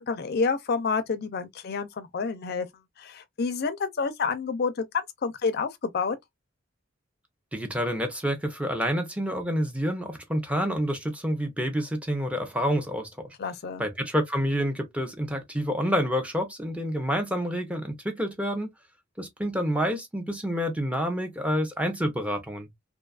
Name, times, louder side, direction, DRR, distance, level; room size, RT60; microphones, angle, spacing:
voice 1, 0.0-2.7 3.0-4.9 5.2-6.2 13.4-13.8, left 4 dB, 50° left, 0.4 m, -29 dB
voice 2, 7.5-13.1 13.8-18.7 19.2-22.7, equal, 5° right, 0.5 m, -28 dB
2.6 x 2.3 x 2.3 m
head